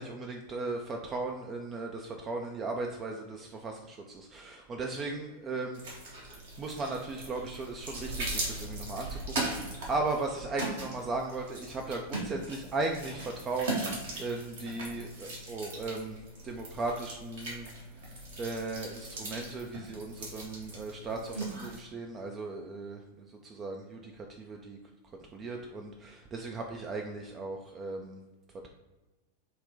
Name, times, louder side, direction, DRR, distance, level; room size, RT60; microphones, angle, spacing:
voice 1, 0.0-5.8 6.6-16.2 16.4-17.7 18.4-24.8 25.3-28.2, right 3 dB, 25° right, 2 dB, 0.3 m, -37 dB
sound 1, 5.7-21.8, right 2 dB, 60° right, 1.0 m, -39 dB
3.8 x 2.2 x 3.7 m, 1.1 s
figure-of-eight pair, 90°, 0 cm